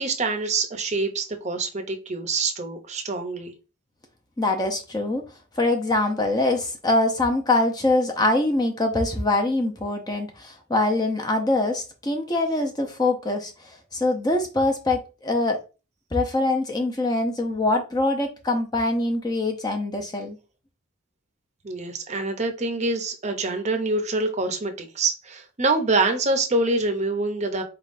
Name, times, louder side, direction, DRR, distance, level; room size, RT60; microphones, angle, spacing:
voice 1, 0.0-3.5 21.6-27.6, right 3 dB, 35° right, 0.6 m, -25 dB
voice 2, 4.4-5.2 5.6-13.5 13.9-15.6 16.1-20.4, left 2 dB, 20° left, 0.6 m, -23 dB
4.4 x 3.6 x 2.5 m
head